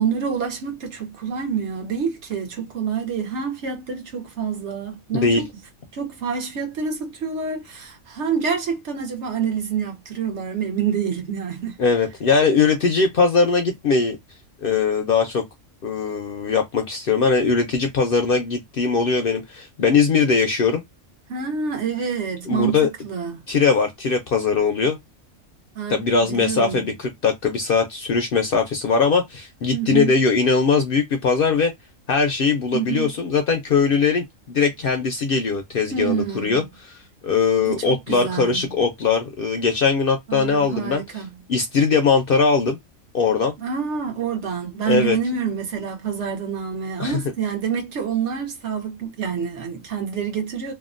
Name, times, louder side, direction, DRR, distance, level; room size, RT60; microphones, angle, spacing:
voice 1, 0.0-5.5 5.9-11.8 21.3-23.4 25.7-26.9 29.7-30.1 32.7-33.1 35.9-36.7 37.7-38.7 40.3-41.4 43.6-50.7, right 6 dB, 65° right, 1.1 m, -27 dB
voice 2, 11.8-14.2 14.6-15.4 15.8-20.8 22.5-22.9 23.5-25.0 25.9-31.7 32.1-37.0 37.2-41.0 41.5-42.8 43.1-43.5 44.9-45.2 47.0-47.2, left 5 dB, 60° left, 0.6 m, -20 dB
2.8 x 2.2 x 2.4 m
omnidirectional pair, 1.3 m